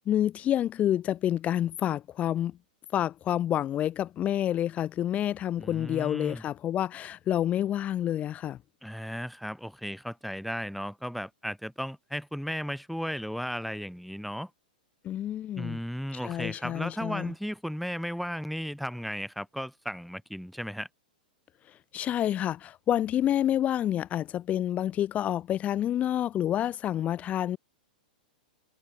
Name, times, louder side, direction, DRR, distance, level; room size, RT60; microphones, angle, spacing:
voice 1, 0.1-2.5 2.9-8.6 15.0-15.8 16.2-17.3 21.9-27.6, left 11 dB, 30° left, 2.0 m, -28 dB
voice 2, 5.6-6.4 8.8-14.5 15.5-20.9, equal, ahead, 2.6 m, -35 dB
hypercardioid pair, 110°, 5 cm